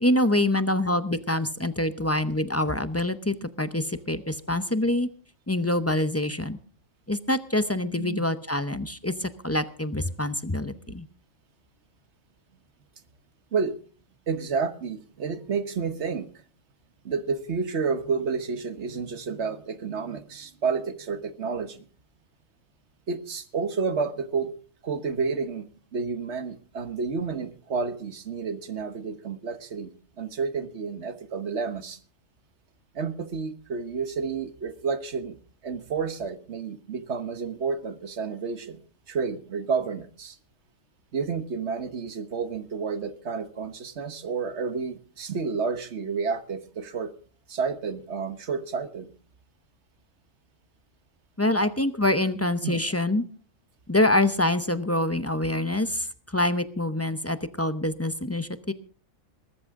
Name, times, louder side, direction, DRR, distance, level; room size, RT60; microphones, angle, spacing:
voice 1, 0.0-5.1 5.5-6.6 7.1-11.1 51.4-53.2 53.9-56.1 56.3-58.7, left 1 dB, 15° left, 11 dB, 0.5 m, -25 dB
voice 2, 7.9-8.2 13.5-13.8 14.3-16.3 17.0-21.8 23.1-24.5 24.8-29.9 30.2-32.0 32.9-35.4 35.6-38.8 39.1-40.4 41.1-47.1 47.5-49.1 52.6-52.8, right 5 dB, 55° right, 11 dB, 1.4 m, -30 dB
19.5 x 13.5 x 3.7 m, 0.41 s
omnidirectional pair, 1.4 m